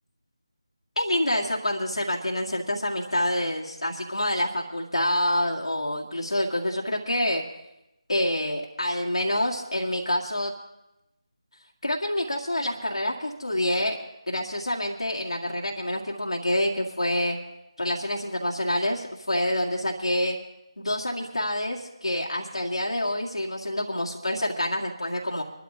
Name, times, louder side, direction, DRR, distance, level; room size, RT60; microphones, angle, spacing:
voice 1, 1.0-7.4 8.1-10.5 11.8-14.0 14.3-17.4 17.8-20.4 20.8-25.4, left 1 dB, 70° left, -2 dB, 2.0 m, -27 dB
26.0 x 12.5 x 2.9 m, 0.91 s
figure-of-eight pair, 160°, 3 cm